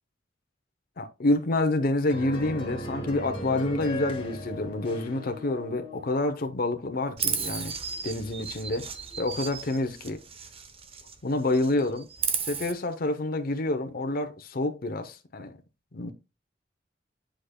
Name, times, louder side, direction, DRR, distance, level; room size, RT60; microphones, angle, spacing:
voice 1, 1.0-7.7 8.0-8.8 9.2-10.2 11.2-12.1 12.4-15.6 15.9-16.1, left 2 dB, 55° left, 0.7 m, -28 dB
sound 1, 2.1-6.3, equal, 30° left, 2.0 m, -37 dB
Chirp tweet, 7.2-11.2 11.5-12.7, right 6 dB, 30° right, 0.8 m, -34 dB
10.0 x 5.0 x 2.2 m
head